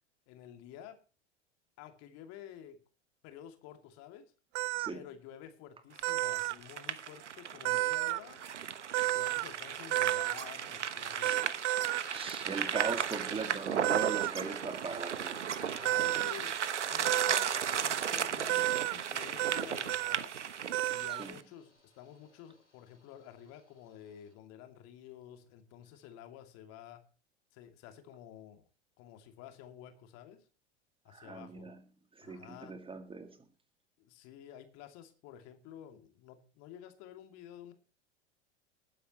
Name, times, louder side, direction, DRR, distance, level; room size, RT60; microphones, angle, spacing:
voice 1, 0.3-1.0 1.8-2.8 3.2-4.3 4.9-8.4 9.0-11.5 12.5-12.9 15.6-20.4 20.9-27.0 27.5-28.6 29.0-30.5 31.0-31.7 32.2-32.8 34.0-37.7, left 10 dB, 45° left, 2.6 m, -51 dB
sound 1, 4.5-4.9 6.0-6.5 7.6-8.2 8.9-9.4 9.9-10.3 11.2-12.0 12.7-13.0 13.8-14.3 15.8-16.3 17.0-17.5 18.5-18.9 19.4-19.6 19.9-20.2 20.7-21.2, right 21 dB, 35° right, 0.5 m, -31 dB
sound 2, 6.0-21.4, right 8 dB, 80° right, 1.1 m, -36 dB
sound 3, 11.8-24.3, left 2 dB, 90° left, 5.9 m, -63 dB
voice 2, 12.1-15.6 21.2-21.4 31.1-31.8 32.2-33.4, right 4 dB, 15° right, 2.0 m, -39 dB
20.0 x 10.0 x 3.0 m
figure-of-eight pair, 90°, 35 cm